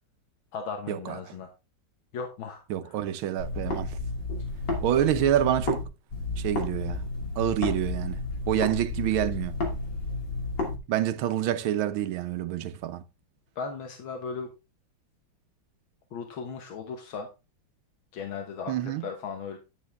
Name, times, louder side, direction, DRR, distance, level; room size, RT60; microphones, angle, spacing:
voice 1, 0.5-1.5 2.1-3.0 13.6-14.5 16.1-17.3 18.1-19.6, left 5 dB, 80° left, 2.0 m, -37 dB
voice 2, 2.7-4.0 4.8-5.8 6.4-7.0 7.4-9.6 10.9-13.0 18.7-19.0, right 11 dB, 90° right, 1.6 m, -27 dB
sound 1, 3.4-5.8 6.1-10.8, left 2 dB, 60° left, 3.2 m, -32 dB
10.0 x 8.2 x 3.4 m
omnidirectional pair, 2.2 m